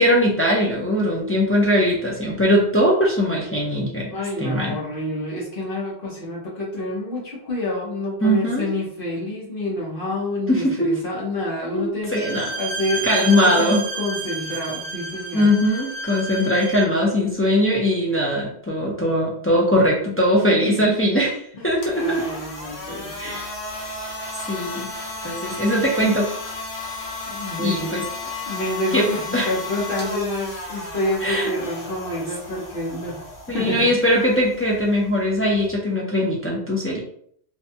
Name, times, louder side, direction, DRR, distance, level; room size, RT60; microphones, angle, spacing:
voice 1, 0.0-4.1 4.4-4.8 8.2-8.7 10.5-11.0 11.7-12.6 13.0-13.8 15.3-22.2 23.2-23.5 24.4-24.9 25.2-26.3 27.6-28.0 28.9-29.5 31.2-31.5 33.5-37.0, equal, 25° left, -4 dB, 0.3 m, -20 dB
voice 2, 4.1-12.3 12.6-15.5 20.5-20.7 21.5-21.7 21.9-23.4 27.3-28.0 28.5-33.2 33.5-33.9, left 1 dB, 60° left, -5 dB, 1.0 m, -28 dB
Bowed string instrument, 12.1-17.0, right 3 dB, 55° right, 0.8 m, -31 dB
sound 1, 21.7-35.7, left 2 dB, 90° left, 1.0 m, -34 dB
2.6 x 2.2 x 2.6 m, 0.63 s
omnidirectional pair, 1.1 m